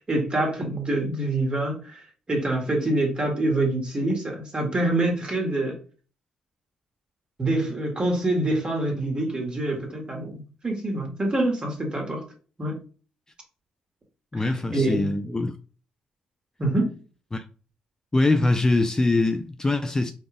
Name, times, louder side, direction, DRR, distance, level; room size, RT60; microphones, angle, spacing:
voice 1, 0.1-2.0 2.3-5.8 7.4-12.2 12.6-12.8 14.4-15.1 16.6-16.9, right 2 dB, 30° right, 1.7 m, -26 dB
voice 2, 14.3-15.5 17.3-17.4 18.1-20.1, left 2 dB, 20° left, 0.4 m, -23 dB
5.1 x 2.4 x 3.4 m
hypercardioid pair, 45°, 3 cm